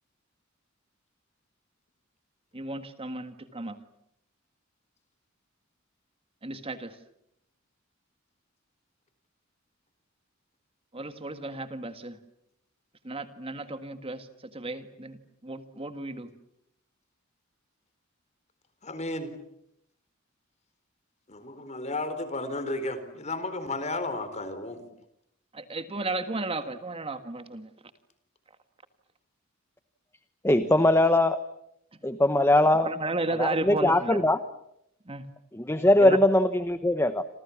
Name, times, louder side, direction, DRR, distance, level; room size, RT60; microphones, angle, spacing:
voice 1, 2.5-3.8 6.4-6.9 10.9-12.2 13.0-14.3 14.5-15.2 15.4-16.3 25.5-27.7 32.6-34.2 35.1-35.2 36.0-36.2, right 2 dB, 30° right, 9 dB, 1.7 m, -34 dB
voice 2, 18.8-19.3 21.3-24.8 30.7-30.9, left 2 dB, 35° left, 11 dB, 4.1 m, -33 dB
voice 3, 30.4-31.4 32.0-32.9 33.4-34.4 35.5-37.2, left 1 dB, 10° left, 11 dB, 1.1 m, -21 dB
28.5 x 28.0 x 7.2 m, 0.78 s
head